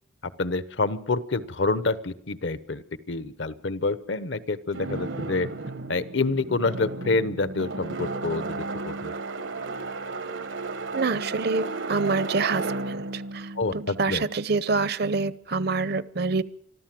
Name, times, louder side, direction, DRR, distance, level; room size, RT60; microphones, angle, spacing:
voice 1, 0.4-5.5 5.9-9.1 13.6-14.2, left 3 dB, 65° left, 15 dB, 1.0 m, -27 dB
sound 1, 4.7-14.7, right 3 dB, 75° right, 1.2 m, -34 dB
voice 2, 10.9-16.4, right 4 dB, 55° right, 18 dB, 0.7 m, -27 dB
25.0 x 14.0 x 7.7 m, 0.68 s
head